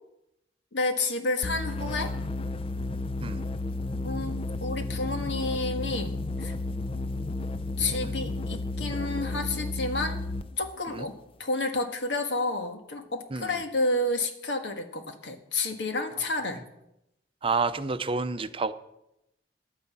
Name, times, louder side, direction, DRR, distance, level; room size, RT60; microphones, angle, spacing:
voice 1, 0.7-2.1 4.0-6.5 7.8-10.2 10.6-11.1 11.4-16.6, left 2 dB, 85° left, 6 dB, 1.6 m, -30 dB
sound 1, 1.4-10.5, left 2 dB, 30° left, 0.5 m, -32 dB
voice 2, 13.3-13.6 17.4-18.7, right 4 dB, 30° right, 11 dB, 0.6 m, -29 dB
11.0 x 9.5 x 7.4 m, 0.86 s
head